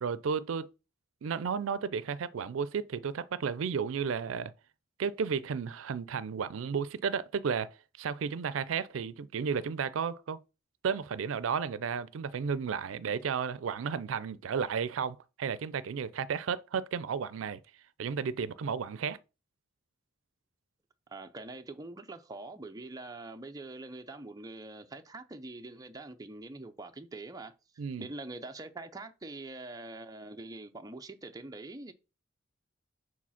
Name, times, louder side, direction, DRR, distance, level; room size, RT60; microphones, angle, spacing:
voice 1, 0.0-0.7 1.2-4.5 5.0-10.4 10.8-17.6 18.0-19.2 27.8-28.1, right 6 dB, 90° right, 0.4 m, -33 dB
voice 2, 21.1-27.5 28.0-31.9, right 2 dB, 20° right, 0.5 m, -44 dB
5.0 x 4.0 x 5.6 m
head